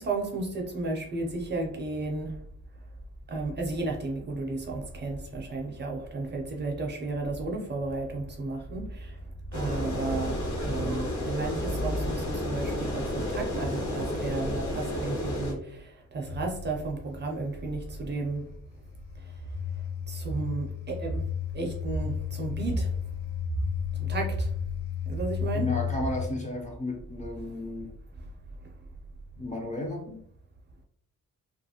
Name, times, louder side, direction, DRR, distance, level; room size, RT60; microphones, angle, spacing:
voice 1, 0.0-2.3 3.3-9.1 9.5-15.8 16.1-18.4 20.1-21.2 21.5-22.9 24.1-24.5 25.1-25.7, right 2 dB, 35° right, 0 dB, 0.5 m, -33 dB
sound 1, 9.5-15.5, equal, 60° left, 1.3 m, -31 dB
sound 2, 16.3-26.3, left 4 dB, 80° left, 0.7 m, -33 dB
voice 2, 25.5-27.9 29.4-30.2, left 2 dB, 25° left, 0 dB, 0.5 m, -33 dB
2.9 x 2.4 x 2.7 m, 0.65 s
wide cardioid pair, 165°, 32 cm